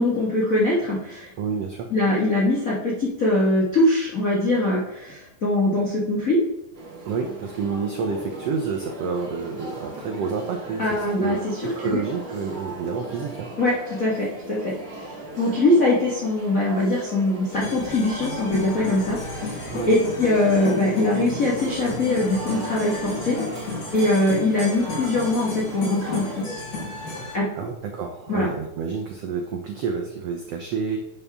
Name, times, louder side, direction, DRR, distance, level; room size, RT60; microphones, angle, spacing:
voice 1, 0.0-1.3 1.9-6.4 10.8-12.0 13.6-23.4 23.9-26.6 27.3-27.5 28.3-28.5, left 2 dB, 35° left, -6 dB, 1.5 m, -22 dB
voice 2, 1.4-1.9 7.1-13.5 19.7-19.9 27.6-31.0, right 5 dB, 75° right, 3 dB, 1.5 m, -29 dB
sound 1, 6.7-26.5, right 2 dB, 40° right, 1.4 m, -38 dB
sound 2, 17.5-27.4, left 3 dB, 75° left, 4.5 m, -32 dB
11.0 x 7.0 x 3.6 m, 0.85 s
omnidirectional pair, 3.9 m